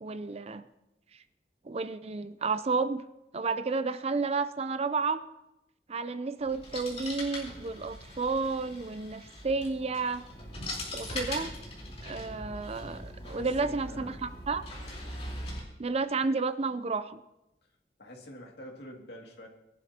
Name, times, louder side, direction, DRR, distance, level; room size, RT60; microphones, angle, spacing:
voice 1, 0.0-0.6 1.7-3.0 3.3-5.2 5.9-10.2 10.9-11.5 12.0-14.6 15.8-17.2, right 4 dB, 35° right, 12 dB, 0.5 m, -31 dB
sound 1, 6.4-15.6, left 1 dB, 35° left, 3.9 m, -41 dB
voice 2, 13.2-14.2 15.3-15.6 18.0-19.5, equal, 65° left, 0 dB, 2.4 m, -47 dB
21.5 x 11.5 x 2.9 m, 0.89 s
head